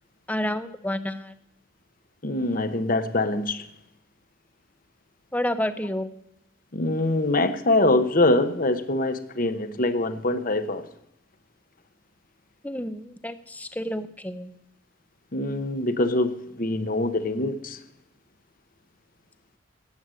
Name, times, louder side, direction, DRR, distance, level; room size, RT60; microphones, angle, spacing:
voice 1, 0.3-1.3 5.3-6.1 12.6-14.5, left 1 dB, 5° left, 12 dB, 0.7 m, -30 dB
voice 2, 2.2-3.7 6.7-10.9 15.3-17.8, left 2 dB, 40° left, 11 dB, 0.9 m, -24 dB
17.5 x 7.9 x 7.6 m, 0.79 s
head